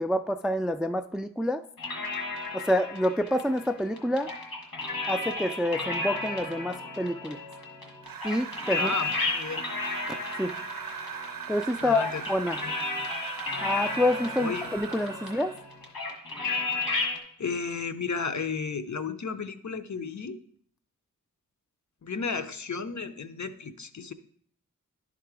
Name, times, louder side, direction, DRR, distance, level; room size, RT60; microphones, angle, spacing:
voice 1, 0.0-1.6 2.5-4.3 5.1-7.4 8.2-8.9 10.4-10.5 11.5-12.6 13.6-15.6, left 1 dB, ahead, 9 dB, 0.3 m, -27 dB
sound 1, 1.8-17.2, left 3 dB, 90° left, 1.6 m, -34 dB
sound 2, 8.0-15.7, right 7 dB, 75° right, 0.5 m, -39 dB
voice 2, 8.8-9.6 11.8-12.2 12.6-12.7 14.4-14.7 17.4-20.4 22.0-24.1, left 5 dB, 55° left, 10 dB, 0.6 m, -33 dB
11.0 x 3.8 x 4.7 m, 0.62 s
wide cardioid pair, 45°, 34 cm